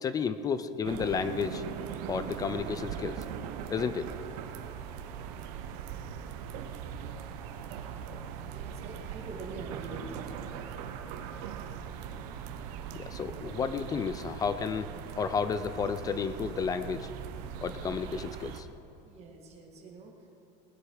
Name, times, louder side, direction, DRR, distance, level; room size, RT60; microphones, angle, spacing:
voice 1, 0.0-1.6 2.1-3.2 3.7-4.1 12.9-17.1 17.6-18.7, left 6 dB, 20° left, 12 dB, 0.3 m, -32 dB
sound 1, 0.8-18.6, right 8 dB, 75° right, 1.0 m, -40 dB
voice 2, 8.5-10.4 19.0-20.3, right 3 dB, 30° right, 0 dB, 2.1 m, -45 dB
19.5 x 9.9 x 4.8 m, 2.9 s
cardioid pair, 165°, 20 cm